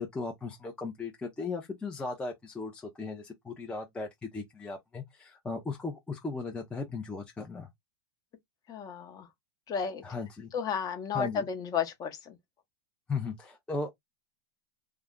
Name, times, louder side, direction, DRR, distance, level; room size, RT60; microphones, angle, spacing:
voice 1, 0.0-7.7 10.0-10.5 11.1-11.5 13.1-13.9, left 3 dB, 10° left, 0.6 m, -37 dB
voice 2, 8.7-9.3 9.7-10.0 10.5-12.4, left 7 dB, 30° left, 0.9 m, -33 dB
2.3 x 2.1 x 3.6 m
hypercardioid pair, 125°, 12 cm